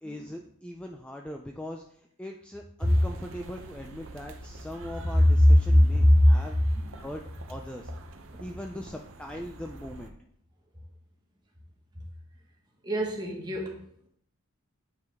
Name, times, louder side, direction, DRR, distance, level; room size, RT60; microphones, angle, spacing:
voice 1, 0.0-6.6 7.0-7.2 7.5-7.9 8.4-10.1, left 1 dB, 5° left, 2 dB, 0.3 m, -40 dB
sound 1, 2.8-10.1, right 2 dB, 65° right, 0.8 m, -45 dB
voice 2, 5.7-6.3 6.8-6.9 8.3-8.4 12.8-13.8, left 1 dB, 20° right, -1 dB, 1.4 m, -22 dB
9.1 x 4.8 x 3.5 m, 0.68 s
head